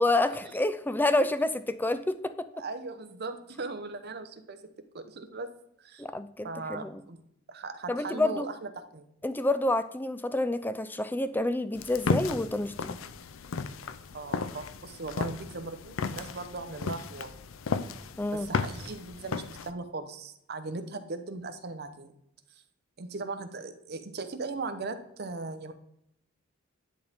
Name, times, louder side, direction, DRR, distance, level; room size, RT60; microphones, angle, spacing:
voice 1, 0.0-2.5 6.0-7.0 7.9-8.5 9.2-13.0 18.2-18.5, left 2 dB, 10° left, 12 dB, 0.4 m, -28 dB
voice 2, 2.5-4.6 4.9-5.5 5.8-6.0 6.4-7.2 7.5-9.0 14.1-17.3 18.3-22.1 23.0-25.7, right 3 dB, 55° right, 9 dB, 0.8 m, -38 dB
sound 1, 11.7-19.7, left 4 dB, 85° left, 0.5 m, -34 dB
10.5 x 4.1 x 3.5 m, 0.78 s
head